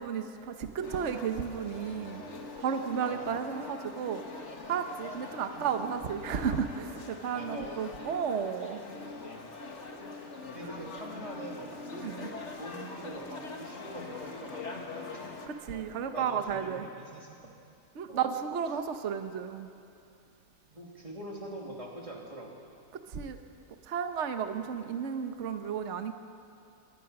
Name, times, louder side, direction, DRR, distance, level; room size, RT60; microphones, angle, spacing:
voice 1, 0.0-2.2 2.6-4.2 4.7-8.8 11.9-12.3 15.5-16.9 17.9-19.7 22.9-23.4 23.8-26.1, right 7 dB, 50° right, 7 dB, 1.2 m, -33 dB
sound 1, 0.8-15.5, left 3 dB, 45° left, 1.9 m, -43 dB
voice 2, 7.3-7.8 8.9-9.5 10.5-11.7 12.6-15.2 15.7-17.5 18.1-18.3 20.7-22.5, right 1 dB, 20° right, -2 dB, 3.0 m, -44 dB
25.5 x 19.5 x 5.9 m, 2.5 s
omnidirectional pair, 1.7 m